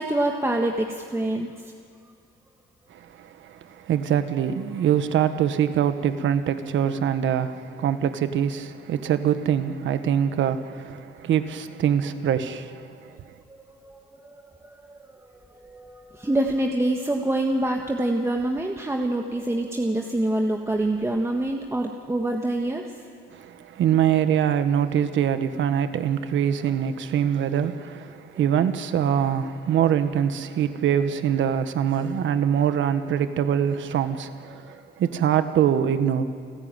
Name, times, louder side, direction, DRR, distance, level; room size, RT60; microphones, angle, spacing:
voice 1, 0.0-1.7 13.5-15.2 15.5-22.9 34.5-34.8, right 1 dB, 15° right, 1.6 m, -26 dB
voice 2, 2.9-12.9 23.3-36.2, right 9 dB, 75° right, 1.4 m, -24 dB
29.5 x 13.5 x 9.1 m
cardioid pair, 90°, 20 cm